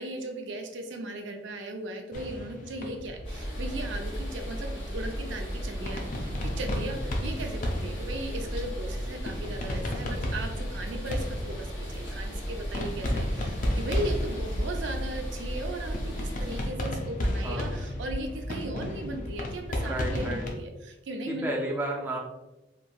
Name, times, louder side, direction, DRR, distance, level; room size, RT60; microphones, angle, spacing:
voice 1, 0.0-21.5, right 1 dB, 70° right, 4 dB, 0.4 m, -37 dB
fireworks climax Montreal Canada, 2.1-20.5, left 1 dB, 45° left, 0.4 m, -34 dB
sound 1, 3.2-16.7, equal, 70° left, 1.0 m, -35 dB
voice 2, 17.4-17.7 19.8-20.4 21.3-22.2, right 1 dB, 10° right, -2 dB, 0.5 m, -32 dB
3.0 x 2.6 x 2.2 m, 0.99 s
head